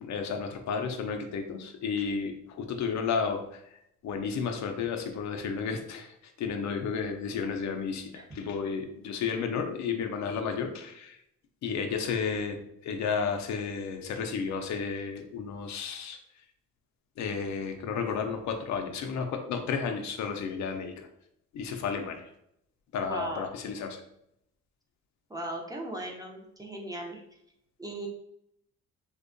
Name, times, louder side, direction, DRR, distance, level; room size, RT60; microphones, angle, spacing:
voice 1, 0.0-3.6 4.0-11.2 11.6-16.2 17.2-21.1 21.5-22.3 22.9-24.0, left 5 dB, 65° left, 5 dB, 0.5 m, -32 dB
voice 2, 23.0-23.5 25.3-27.2 27.8-28.1, right 1 dB, 10° right, -1 dB, 0.5 m, -37 dB
2.6 x 2.2 x 2.5 m, 0.76 s
cardioid pair, 90°, 30 cm